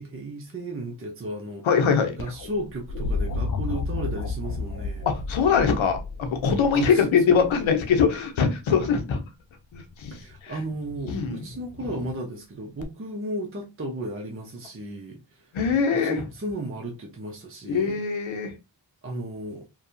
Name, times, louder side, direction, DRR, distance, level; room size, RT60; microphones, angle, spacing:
voice 1, 0.0-1.7 2.2-5.1 6.7-7.2 10.1-15.5 15.9-18.0 19.0-19.7, right 1 dB, 30° right, 0.7 m, -34 dB
voice 2, 1.6-2.1 5.1-9.2 9.7-10.6 11.1-11.4 15.5-16.3 17.7-18.5, left 6 dB, 85° left, 0.7 m, -23 dB
sound 1, 2.2-8.1 9.7-10.2 12.8-12.9, left 3 dB, 40° left, 0.4 m, -32 dB
2.7 x 2.3 x 2.6 m
cardioid pair, 50°, 46 cm